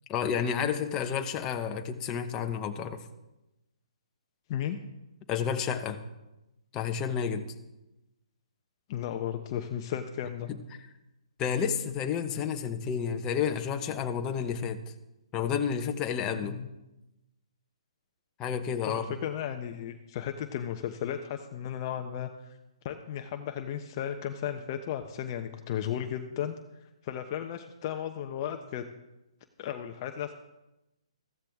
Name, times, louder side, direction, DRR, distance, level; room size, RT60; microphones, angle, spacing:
voice 1, 0.1-3.0 5.3-6.0 6.7-7.4 10.5-10.6 11.4-14.8 15.3-16.6 18.4-19.0, left 7 dB, 20° left, 5 dB, 1.1 m, -30 dB
voice 2, 8.9-10.5 16.4-16.7 18.8-22.3 22.8-26.6 27.0-28.8 29.6-30.3, left 10 dB, 35° left, 6 dB, 0.9 m, -34 dB
14.5 x 14.5 x 3.6 m, 0.96 s
hypercardioid pair, 135°, 3 cm